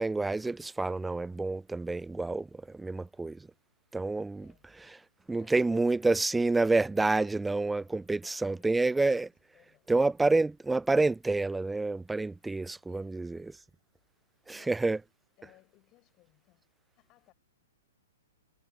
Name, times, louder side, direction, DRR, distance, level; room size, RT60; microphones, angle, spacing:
voice 1, 0.0-3.5 3.9-4.5 5.3-9.3 9.9-13.5 14.5-15.0, right 3 dB, 5° right, 0.4 m, -28 dB
voice 2, 4.3-4.7 5.4-9.2 9.5-9.9 12.7-13.3 14.3-14.8 15.4-17.3, left 19 dB, 30° left, 7.1 m, -64 dB
hypercardioid pair, 130°, 0 cm